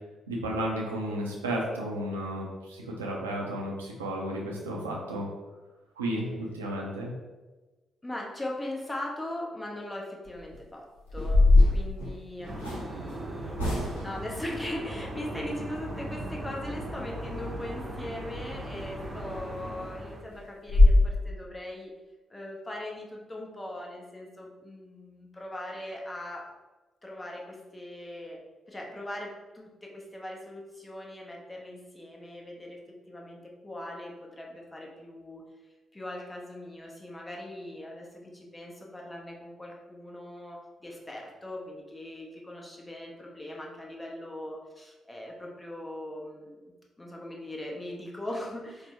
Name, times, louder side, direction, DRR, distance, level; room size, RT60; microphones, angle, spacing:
voice 1, 0.3-5.3 6.0-7.1, right 1 dB, 85° right, -2 dB, 0.5 m, -33 dB
voice 2, 8.0-21.9 22.3-26.5 27.0-28.4 28.7-32.8 33.1-35.5 35.9-48.9, left 1 dB, 20° left, -1 dB, 0.8 m, -40 dB
sound 1, 10.3-10.6 11.1-12.9 13.6-14.2 18.7-18.9 19.3-19.4 19.8-19.9 20.3-20.4 20.7-21.0, left 2 dB, 85° left, 0.7 m, -21 dB
sound 2, 12.4-20.2, right 1 dB, 25° right, 0.8 m, -38 dB
4.4 x 2.1 x 2.9 m, 1.2 s
figure-of-eight pair, 40°, 0 cm